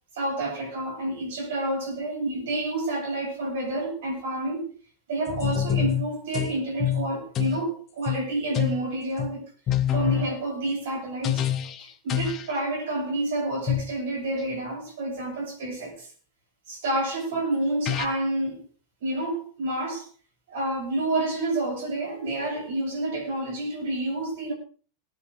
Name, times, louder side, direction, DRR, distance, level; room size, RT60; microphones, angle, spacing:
voice 1, 0.1-4.7 5.1-9.4 9.9-11.4 11.8-16.1 16.7-18.7 19.0-20.1 20.5-24.5, right 2 dB, 55° right, 7.2 m, -29 dB
sound 1, 5.3-6.5 6.8-7.6 8.1-8.2 8.5-8.8 9.2-9.3 9.7-10.4 11.2-11.8 12.1-12.5 13.7-13.9 17.3-17.4 17.9-18.1, left 11 dB, 30° left, 1.3 m, -26 dB
19.0 x 9.5 x 4.9 m
figure-of-eight pair, 90°, 0 cm